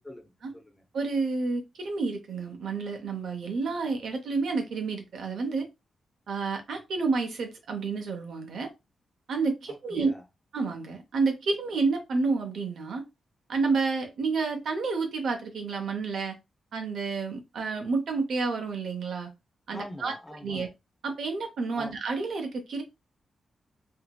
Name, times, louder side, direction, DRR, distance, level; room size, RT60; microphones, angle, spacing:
voice 1, 0.0-0.8 9.9-10.2 19.7-20.7 21.8-22.0, left 1 dB, 10° left, 0.6 m, -43 dB
voice 2, 0.9-5.7 6.3-8.7 9.3-10.1 10.5-13.0 13.5-16.3 16.7-19.3 19.7-20.1 20.4-20.7 21.0-22.8, right 4 dB, 70° right, 0.7 m, -29 dB
2.8 x 2.7 x 2.2 m
wide cardioid pair, 170°, 0 cm